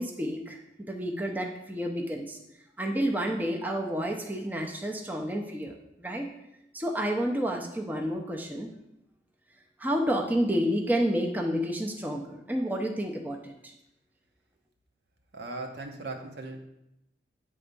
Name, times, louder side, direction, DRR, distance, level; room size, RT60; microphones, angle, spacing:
voice 1, 0.0-2.4 2.8-6.3 6.7-8.7 9.8-13.7, equal, 10° right, 1 dB, 0.5 m, -30 dB
voice 2, 15.3-16.6, right 2 dB, 70° right, 3 dB, 0.9 m, -38 dB
8.4 x 3.4 x 5.3 m, 0.85 s
head